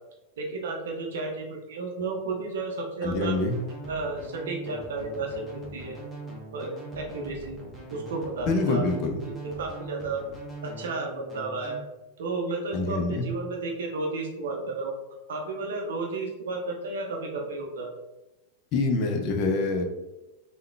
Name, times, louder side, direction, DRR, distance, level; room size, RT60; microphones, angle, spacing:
voice 1, 0.4-3.4 3.9-6.0 6.5-7.6 7.9-8.8 9.3-10.2 10.6-11.8 12.2-14.9 15.3-17.9, right 3 dB, 60° right, 0 dB, 0.6 m, -32 dB
voice 2, 3.0-3.6 8.5-9.2 12.7-13.3 18.7-19.8, left 3 dB, 40° left, 4 dB, 0.6 m, -25 dB
sound 1, 3.0-11.8, right 2 dB, 5° right, 1.0 m, -42 dB
3.6 x 2.3 x 3.1 m, 1.0 s
figure-of-eight pair, 90°, 0 cm